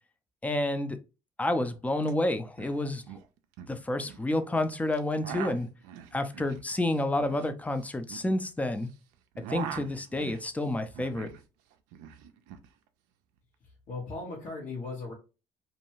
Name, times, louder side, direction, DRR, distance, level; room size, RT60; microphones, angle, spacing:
voice 1, 0.4-1.0 1.4-3.0 3.7-5.7 6.1-8.9 9.5-11.3, left 1 dB, 10° left, 0.5 m, -29 dB
sound 1, 2.0-2.1 2.4-2.8 3.0-4.2 4.9-8.9 9.2-11.4 11.7-12.7, right 10 dB, 80° right, 0.4 m, -42 dB
voice 2, 13.6-15.1, left 3 dB, 65° left, 1.1 m, -38 dB
2.6 x 2.2 x 3.0 m
supercardioid pair, 75°, 14 cm